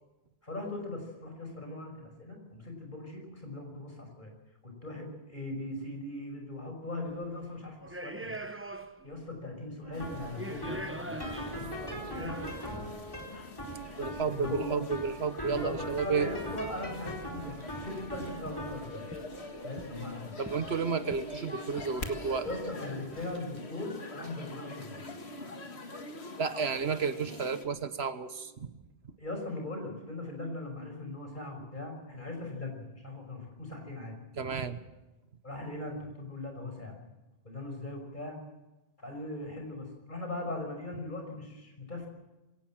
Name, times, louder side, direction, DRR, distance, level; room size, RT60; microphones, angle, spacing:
voice 1, 0.4-4.3 4.6-7.8 8.0-8.3 9.0-12.3 12.6-12.9 14.3-14.8 15.4-19.1 19.6-20.5 22.4-25.0 29.2-34.1 35.4-37.0 37.4-38.4 39.0-42.1, left 2 dB, 50° left, 2 dB, 6.0 m, -40 dB
sound 1, 7.0-7.3 7.8-9.2 9.5-9.6 10.2-12.8 13.7-13.8 15.5-16.0 16.5-16.6 16.8-17.3 17.6-18.0 18.5-18.7 19.1-20.1 20.5-21.4 21.8-22.0 22.3-22.7 23.1-23.6, right 1 dB, 15° right, 1.0 m, -43 dB
sound 2, 9.8-27.0, right 1 dB, 20° left, 4.0 m, -43 dB
sound 3, 9.9-27.7, left 2 dB, 85° left, 2.1 m, -45 dB
voice 2, 14.0-16.3 20.4-22.5 26.4-28.7 34.4-34.8, right 5 dB, 80° right, 11 dB, 1.5 m, -32 dB
21.5 x 18.0 x 7.6 m, 1.0 s
omnidirectional pair, 1.1 m